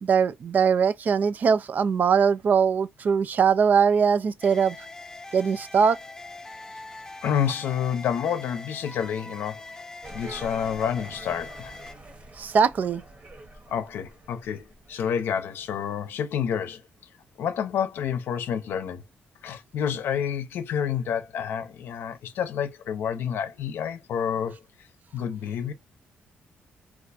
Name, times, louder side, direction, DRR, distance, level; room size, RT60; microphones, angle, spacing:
voice 1, 0.0-4.8 5.3-6.0 12.4-13.0, right 6 dB, 50° right, 0.4 m, -21 dB
sound 1, 4.4-11.9, left 2 dB, 15° left, 0.5 m, -42 dB
voice 2, 7.2-9.6 10.1-11.8 13.7-16.8 17.4-19.0 19.4-24.6 25.1-25.7, left 8 dB, 75° left, 0.6 m, -29 dB
sound 2, 10.0-15.2, right 2 dB, 35° right, 1.1 m, -45 dB
2.4 x 2.3 x 4.0 m
cardioid pair, 95°, 4 cm